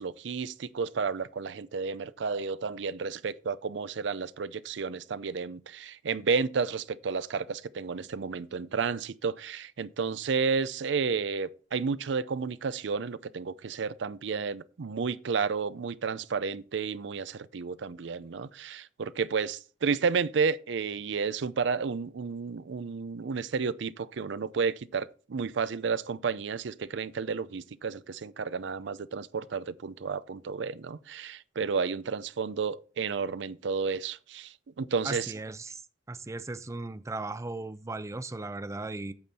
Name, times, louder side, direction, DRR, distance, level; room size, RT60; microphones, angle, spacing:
voice 1, 0.0-35.3, right 5 dB, 70° right, 0.5 m, -31 dB
voice 2, 35.0-35.8 36.1-39.1, right 2 dB, 15° right, 0.5 m, -37 dB
8.7 x 7.7 x 4.2 m
head